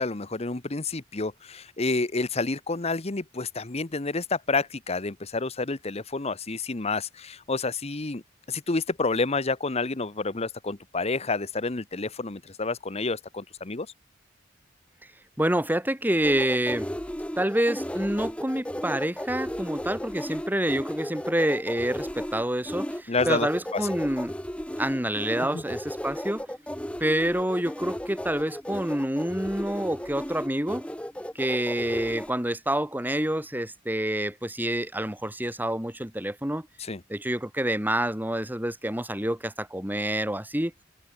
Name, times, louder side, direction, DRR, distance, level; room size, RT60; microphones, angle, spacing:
voice 1, 0.0-8.2 8.5-13.9 23.1-23.5 23.7-23.8 25.5-25.6 36.8-37.0, left 3 dB, 30° left, 1.0 m, -29 dB
voice 2, 15.4-16.9 17.4-24.3 24.8-26.5 27.0-30.8 31.3-36.7 37.1-40.7, right 1 dB, 10° right, 4.0 m, -27 dB
sound 1, 16.2-32.3, equal, 5° left, 2.1 m, -35 dB
open air
head